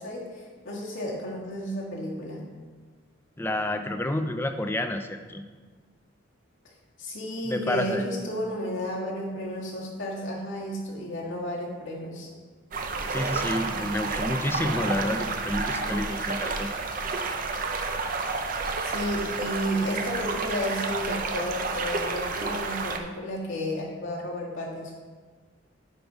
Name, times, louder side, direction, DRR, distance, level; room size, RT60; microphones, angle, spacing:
voice 1, 0.0-2.4 7.0-12.3 18.8-24.9, equal, 75° left, -4 dB, 1.8 m, -32 dB
voice 2, 3.4-5.4 7.5-8.1 13.1-16.7, left 1 dB, 10° left, 7 dB, 0.4 m, -29 dB
sound 1, 12.7-23.0, right 3 dB, 45° right, 0.6 m, -30 dB
9.6 x 4.0 x 4.8 m, 1.5 s
head